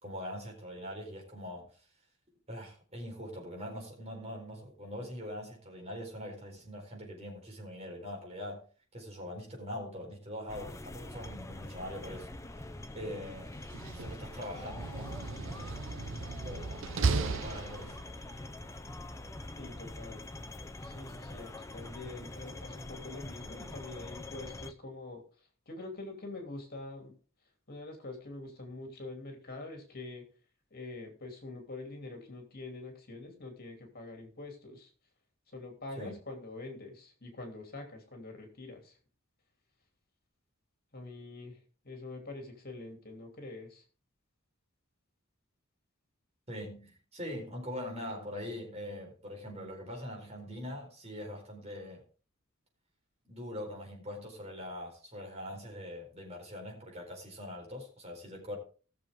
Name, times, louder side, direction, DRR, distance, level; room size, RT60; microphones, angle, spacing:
voice 1, 0.0-1.7 2.5-8.6 8.9-12.3 12.5-13.6 13.9-15.8 16.4-18.0 18.2-18.4 36.0-36.2 46.5-52.0 53.2-58.6, left 1 dB, 30° right, 1 dB, 4.5 m, -43 dB
sound 1, 10.5-24.7, left 2 dB, 15° left, 0.7 m, -45 dB
Slam, 13.6-18.3, right 4 dB, 65° right, 0.7 m, -35 dB
voice 2, 19.6-20.2 20.8-25.2 25.7-27.1 27.7-30.2 30.7-34.9 35.5-39.0 40.9-41.6 41.8-43.8, left 2 dB, 45° left, 3 dB, 3.0 m, -45 dB
19.0 x 6.9 x 3.7 m, 0.37 s
head